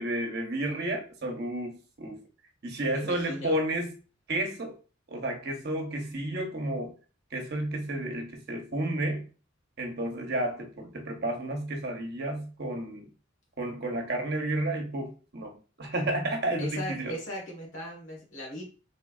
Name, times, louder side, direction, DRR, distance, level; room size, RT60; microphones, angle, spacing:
voice 1, 0.0-2.2 2.6-3.9 4.3-4.8 5.1-6.9 7.3-9.2 9.8-13.1 13.6-17.1, right 1 dB, 50° right, 3 dB, 0.8 m, -31 dB
voice 2, 2.9-3.6 16.6-18.6, left 1 dB, 75° left, -2 dB, 1.5 m, -38 dB
3.3 x 3.1 x 2.4 m, 0.36 s
head